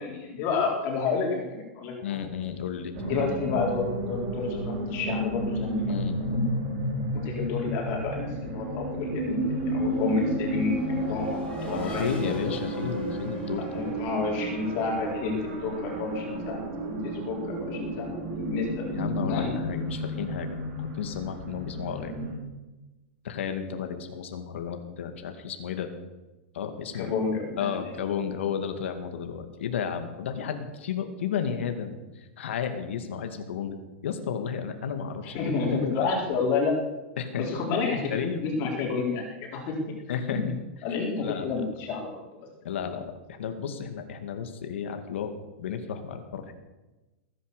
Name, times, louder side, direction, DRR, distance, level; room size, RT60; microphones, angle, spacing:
voice 1, 0.0-2.2 3.0-6.4 7.1-12.4 13.7-16.6 16.8-18.8 19.3-19.5 26.9-27.7 35.3-36.7 37.4-39.9 40.3-40.5 40.8-42.2, left 4 dB, 35° left, -1 dB, 4.1 m, -30 dB
voice 2, 2.0-3.1 5.9-6.2 11.7-13.7 18.9-22.2 23.2-25.9 26.5-27.1 27.6-35.5 36.0-36.1 37.2-37.5 38.1-38.5 40.1-40.4 41.2-41.6 42.6-45.3 45.6-46.5, left 7 dB, 75° left, 6 dB, 2.4 m, -33 dB
sound 1, 2.9-22.3, right 1 dB, 35° right, 4.4 m, -32 dB
Race car auto racing / Accelerating revving vroom, 8.9-14.9, left 2 dB, 15° left, 5.2 m, -43 dB
20.0 x 10.0 x 6.8 m, 1.1 s
supercardioid pair, 160°, 7 cm